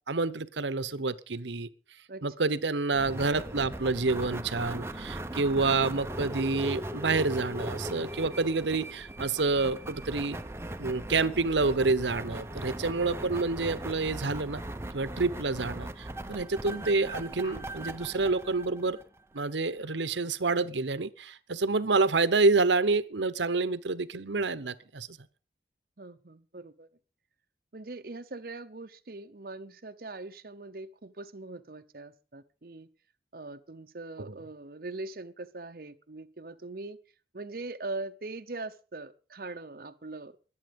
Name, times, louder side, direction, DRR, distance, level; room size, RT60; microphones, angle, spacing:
voice 1, 0.1-1.7 2.2-10.4 10.8-14.6 14.9-19.0 19.3-25.2 34.3-34.4, right 3 dB, 85° right, 16 dB, 1.0 m, -28 dB
voice 2, 2.1-2.5 26.0-26.9 27.7-32.9 33.3-37.0 37.3-40.4, right 2 dB, 55° right, 7 dB, 0.8 m, -41 dB
sound 1, 2.9-19.4, right 1 dB, 15° right, 0.7 m, -39 dB
sound 2, 17.4-18.0 19.8-20.0 20.4-20.8, left 1 dB, 80° left, 5.3 m, -51 dB
22.0 x 8.8 x 5.3 m, 0.37 s
head